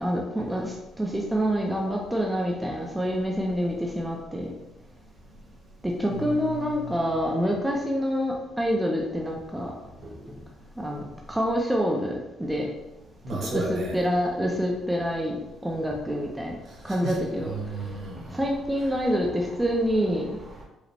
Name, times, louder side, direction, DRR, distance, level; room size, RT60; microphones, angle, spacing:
voice 1, 0.0-4.5 5.8-9.7 10.3-10.4 10.8-12.7 13.3-16.6 16.8-17.5 18.3-20.3, equal, 5° right, -1 dB, 0.5 m, -27 dB
voice 2, 6.1-7.1 10.0-10.2 13.2-13.9 16.7-18.5 18.7-19.1 20.3-20.6, right 1 dB, 55° right, -2 dB, 1.2 m, -35 dB
4.8 x 2.1 x 3.3 m, 0.96 s
cardioid pair, 130°, 0 cm